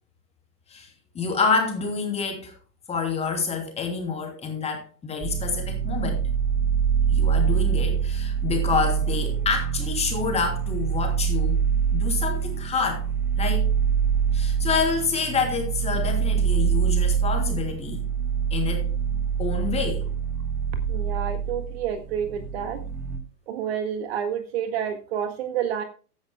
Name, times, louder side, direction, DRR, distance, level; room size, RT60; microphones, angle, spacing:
voice 1, 1.1-2.5 2.9-6.2 7.1-11.6 11.9-13.0 13.4-13.7 14.3-18.0 18.5-18.9 19.4-20.1, left 5 dB, 15° left, 3.0 m, -27 dB
sound 1, 5.2-23.2, right 7 dB, 25° right, 1.6 m, -25 dB
voice 2, 20.9-22.8 23.5-25.8, right 8 dB, 40° right, 1.7 m, -29 dB
15.5 x 10.5 x 2.2 m
figure-of-eight pair, 110°, 47 cm